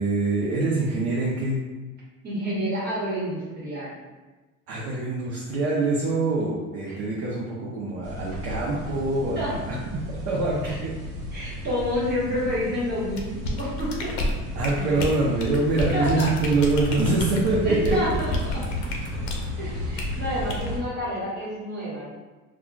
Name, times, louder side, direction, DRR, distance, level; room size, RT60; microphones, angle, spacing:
voice 1, 0.0-1.6 4.7-9.8 10.3-10.9 11.4-11.6 14.5-18.1, right 2 dB, 50° right, -4 dB, 0.5 m, -25 dB
voice 2, 2.2-3.9 6.9-7.0 9.3-9.5 10.6-10.8 11.3-14.2 14.7-15.0 15.9-16.3 16.9-17.0 17.6-18.6 19.6-22.1, equal, 30° right, -7 dB, 1.2 m, -29 dB
sound 1, 8.0-20.8, left 1 dB, 85° right, 1.0 m, -33 dB
sound 2, 13.1-19.5 20.0-20.1 20.5-20.7, left 1 dB, 70° left, 0.6 m, -31 dB
2.3 x 2.2 x 3.7 m, 1.2 s
cardioid pair, 155°, 31 cm